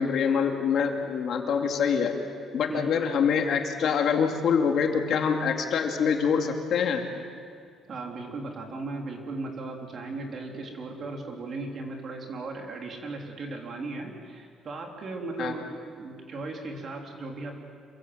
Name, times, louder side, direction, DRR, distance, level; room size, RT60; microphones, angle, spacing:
voice 1, 0.0-2.2 2.5-7.0 15.4-15.5, left 6 dB, 55° left, 3 dB, 2.4 m, -25 dB
voice 2, 7.9-17.5, right 3 dB, 35° right, 1 dB, 3.6 m, -37 dB
27.5 x 23.0 x 8.0 m, 2.2 s
cardioid pair, 165°, 0 cm